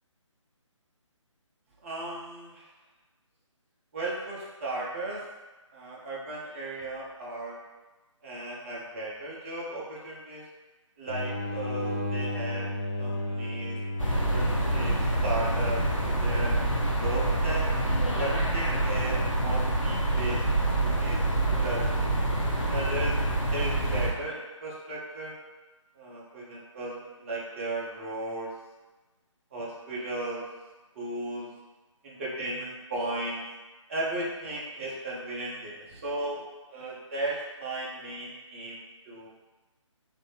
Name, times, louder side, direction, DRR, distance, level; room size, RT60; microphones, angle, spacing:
voice 1, 1.8-2.6 3.9-5.2 5.7-7.6 8.2-10.4 11.0-12.7 13.0-13.8 14.1-16.5 17.0-17.6 18.2-21.2 21.6-21.8 22.7-23.1 23.5-25.3 26.0-28.5 29.5-30.5 30.9-31.5 32.0-33.4 33.9-36.4 36.7-39.3, right 2 dB, 25° right, -5 dB, 0.8 m, -35 dB
sound 1, 11.1-16.4, left 1 dB, 25° left, 0.4 m, -33 dB
sound 2, 14.0-24.1, right 1 dB, 80° left, 1.1 m, -26 dB
4.0 x 2.7 x 3.3 m, 1.2 s
figure-of-eight pair, 150°, 16 cm